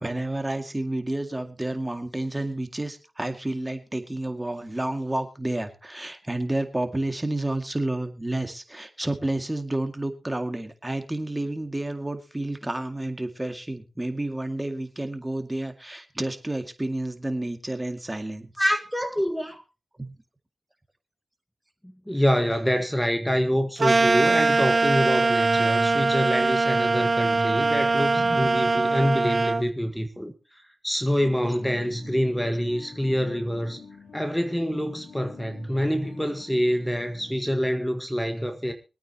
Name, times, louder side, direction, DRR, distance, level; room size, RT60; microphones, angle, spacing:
voice 1, 0.0-18.5 20.0-20.1, right 1 dB, 20° right, 2.1 m, -30 dB
voice 2, 18.6-19.6 22.1-33.8 34.1-38.7, equal, 5° left, 1.6 m, -26 dB
sound 1, 23.8-29.6, right 3 dB, 55° right, 1.1 m, -22 dB
sound 2, 31.4-37.3, left 5 dB, 85° left, 3.2 m, -47 dB
24.5 x 8.9 x 2.9 m
cardioid pair, 50°, 0 cm